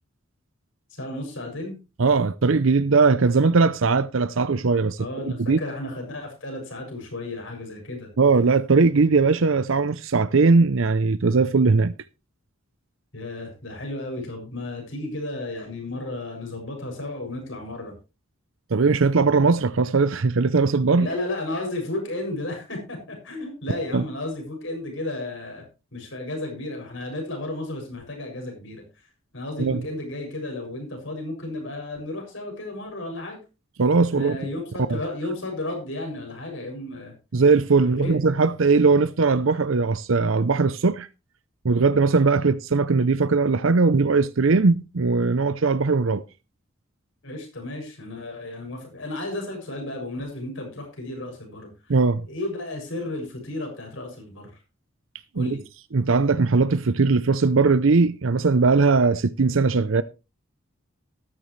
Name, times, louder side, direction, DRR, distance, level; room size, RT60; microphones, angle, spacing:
voice 1, 1.0-1.8 5.0-8.1 13.1-17.9 21.0-25.6 25.9-28.8 29.3-33.4 34.1-37.1 37.8-38.2 47.2-51.7 52.3-54.5 55.3-55.6, left 2 dB, 65° left, 7.1 m, -33 dB
voice 2, 2.0-5.6 8.2-11.9 18.7-21.1 23.9-24.1 29.6-29.8 33.8-34.4 34.9-35.0 37.3-41.1 41.6-46.2 51.9-52.2 55.4-55.6 55.9-60.0, right 4 dB, 70° right, 0.6 m, -20 dB
13.5 x 13.0 x 3.2 m
head